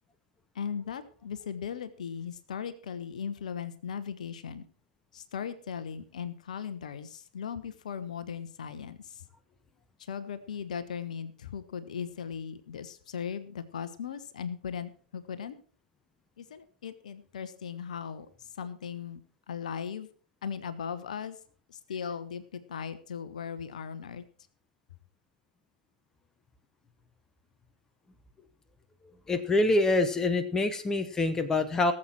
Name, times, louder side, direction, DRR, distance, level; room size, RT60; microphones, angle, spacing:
voice 1, 0.5-4.7 5.1-9.2 10.0-15.5 16.4-18.3 18.6-19.2 19.5-20.1 20.4-21.4 21.7-24.2, left 7 dB, 55° left, 13 dB, 1.0 m, -38 dB
voice 2, 29.3-31.9, left 2 dB, 10° left, 9 dB, 0.9 m, -25 dB
18.0 x 7.6 x 4.5 m, 0.43 s
figure-of-eight pair, 105°, 5 cm